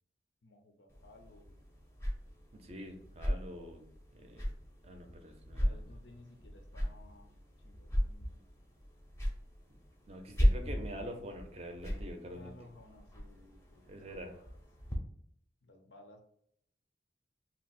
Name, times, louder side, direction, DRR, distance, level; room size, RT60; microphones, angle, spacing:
voice 1, 0.4-1.8 5.5-8.4 12.3-14.5 15.6-16.2, left 2 dB, 85° left, 4 dB, 0.6 m, -58 dB
sound 1, 0.9-15.0, equal, 15° left, 0.5 m, -37 dB
voice 2, 2.5-3.8 4.1-4.5 4.8-5.8 10.1-12.5 13.9-14.4, equal, 35° right, 4 dB, 0.5 m, -45 dB
2.8 x 2.0 x 4.1 m, 0.67 s
head